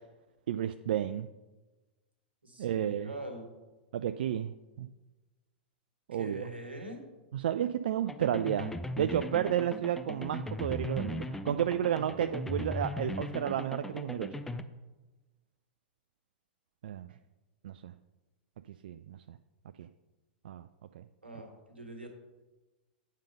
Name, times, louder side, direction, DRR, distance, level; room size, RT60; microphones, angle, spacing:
voice 1, 0.5-1.3 2.6-3.1 3.9-4.9 6.1-6.5 7.3-8.7 9.0-14.3 16.8-17.1 17.6-17.9 18.8-19.4 19.8-19.9 20.4-20.6 20.9-21.0, right 10 dB, 65° right, 10 dB, 0.3 m, -32 dB
voice 2, 2.4-3.5 6.1-7.1 21.2-22.1, right 1 dB, 85° right, 4 dB, 1.7 m, -43 dB
sound 1, 8.1-14.6, left 1 dB, 5° left, 0.5 m, -38 dB
8.9 x 5.3 x 5.4 m, 1.2 s
figure-of-eight pair, 100°, 6 cm